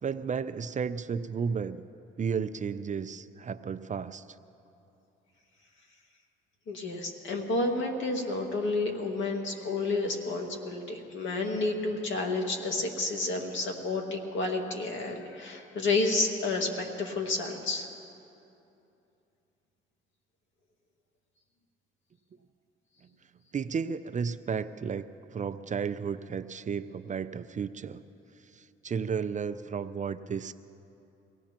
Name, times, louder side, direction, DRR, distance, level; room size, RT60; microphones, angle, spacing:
voice 1, 0.0-1.8 2.2-4.2 23.5-28.0 28.5-30.5, right 6 dB, 35° right, 11 dB, 0.5 m, -33 dB
voice 2, 6.7-17.9, left 2 dB, 65° left, 2 dB, 2.0 m, -30 dB
24.0 x 17.0 x 3.0 m, 2.8 s
supercardioid pair, 70°, 21 cm